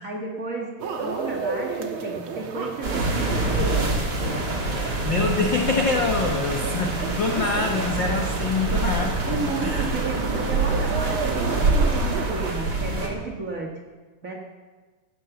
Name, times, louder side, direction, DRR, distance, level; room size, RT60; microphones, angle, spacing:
voice 1, 0.0-3.8 9.3-13.7 14.2-14.3, right 4 dB, 80° right, -1 dB, 0.7 m, -33 dB
sound 1, 0.8-12.5, right 4 dB, 60° right, 1.4 m, -33 dB
sound 2, 2.8-13.1, right 2 dB, 30° right, 2.5 m, -26 dB
voice 2, 4.8-9.4 9.6-9.9, left 3 dB, 75° left, 1 dB, 1.0 m, -25 dB
15.5 x 11.5 x 7.1 m, 1.3 s
omnidirectional pair, 4.2 m